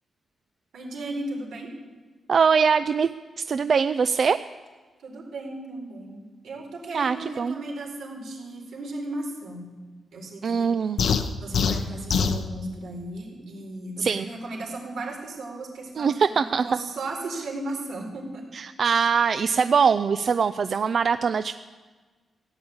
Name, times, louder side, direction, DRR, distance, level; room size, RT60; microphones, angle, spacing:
voice 1, 0.7-1.7 5.0-9.7 10.1-10.7 11.0-11.1 11.4-18.4, right 2 dB, 85° right, -1 dB, 4.2 m, -36 dB
voice 2, 2.3-3.1 3.4-4.4 6.9-7.5 10.4-11.0 14.0-14.3 16.0-16.6 18.5-21.5, right 6 dB, 50° right, 11 dB, 0.4 m, -22 dB
sound 1, 11.0-12.4, left 6 dB, 70° left, 0.8 m, -23 dB
15.5 x 8.8 x 8.6 m, 1.3 s
wide cardioid pair, 125°, 0 cm